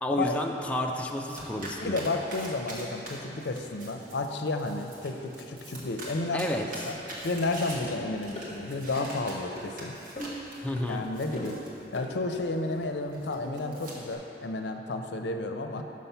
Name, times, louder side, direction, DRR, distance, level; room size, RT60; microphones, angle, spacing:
voice 1, 0.0-2.0 6.3-6.6 10.6-11.0, left 1 dB, 5° left, 1 dB, 0.4 m, -30 dB
Domestic sounds home sounds, 0.6-14.1, right 1 dB, 50° right, 1.4 m, -44 dB
voice 2, 1.8-6.6 6.8-7.0 7.2-9.9 10.9-11.6 11.9-15.8, left 2 dB, 75° left, 5 dB, 0.5 m, -32 dB
sound 1, 7.8-7.9 8.4-8.5 9.0-9.2 9.6-9.7 10.2-10.5 10.8-10.9 11.4-11.6 12.0-12.1, equal, 35° left, 0.9 m, -39 dB
6.2 x 5.7 x 5.5 m, 3.0 s
head